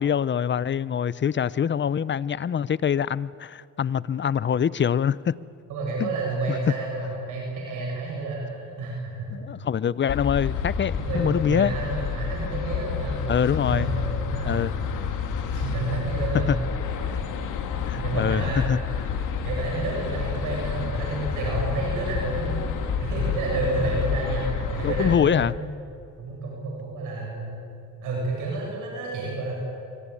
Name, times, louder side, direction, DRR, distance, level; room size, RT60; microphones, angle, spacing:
voice 1, 0.0-5.3 6.0-6.1 6.5-6.6 9.3-11.7 13.3-13.9 14.4-14.7 16.5-16.6 17.9-18.8 24.8-25.5, left 8 dB, 40° left, 19 dB, 0.7 m, -24 dB
voice 2, 5.7-9.3 11.0-14.6 15.5-16.5 17.1-17.2 17.9-18.7 19.4-25.7 26.2-27.6 28.0-29.5, right 3 dB, 90° right, -2 dB, 7.5 m, -30 dB
sound 1, 10.1-25.2, left 6 dB, 85° left, 2.7 m, -29 dB
25.0 x 24.5 x 8.6 m, 2.6 s
cardioid pair, 90°, 30 cm